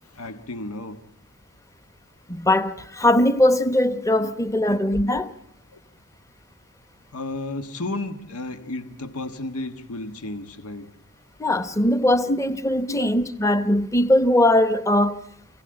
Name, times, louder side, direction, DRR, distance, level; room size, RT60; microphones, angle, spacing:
voice 1, 0.1-1.0 7.1-10.9 12.9-13.1, left 2 dB, 80° left, 1.5 m, -33 dB
voice 2, 2.3-5.3 11.4-15.2, left 1 dB, 15° left, 1.0 m, -20 dB
28.5 x 17.0 x 8.9 m
head